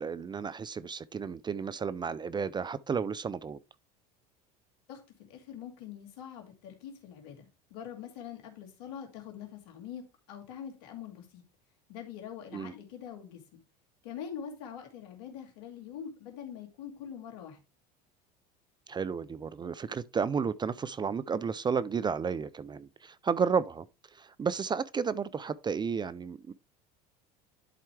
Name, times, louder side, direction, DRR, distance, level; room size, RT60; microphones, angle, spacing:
voice 1, 0.0-3.6 12.5-12.7 18.9-23.9 24.1-26.5, right 6 dB, 20° right, 0.4 m, -32 dB
voice 2, 4.9-11.4 11.9-13.6 14.0-17.6, left 8 dB, 75° left, 2.6 m, -44 dB
11.0 x 4.4 x 3.3 m
hypercardioid pair, 85°, 20 cm